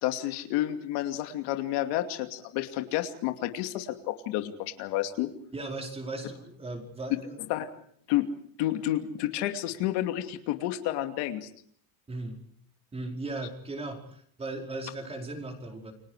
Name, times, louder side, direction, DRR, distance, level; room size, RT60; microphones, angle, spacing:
voice 1, 0.0-5.3 7.5-7.7 8.1-8.2 8.6-11.5, left 14 dB, 65° left, 6 dB, 2.7 m, -30 dB
voice 2, 5.5-7.4 12.1-12.4 12.9-15.9, right 2 dB, 15° right, 2 dB, 5.0 m, -37 dB
30.0 x 24.0 x 4.9 m, 0.62 s
cardioid pair, 160°, 44 cm